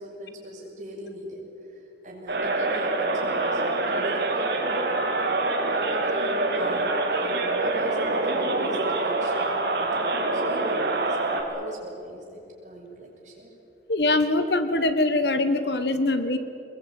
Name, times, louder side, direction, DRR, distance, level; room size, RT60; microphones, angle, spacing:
voice 1, 0.0-4.9 5.2-12.2 12.6-13.5, right 1 dB, 45° right, -2 dB, 6.4 m, -39 dB
sound 1, 2.3-11.4, right 2 dB, 65° right, 3.4 m, -25 dB
voice 2, 13.9-16.4, left 2 dB, 65° left, 10 dB, 1.5 m, -23 dB
24.5 x 21.0 x 9.1 m, 3.0 s
head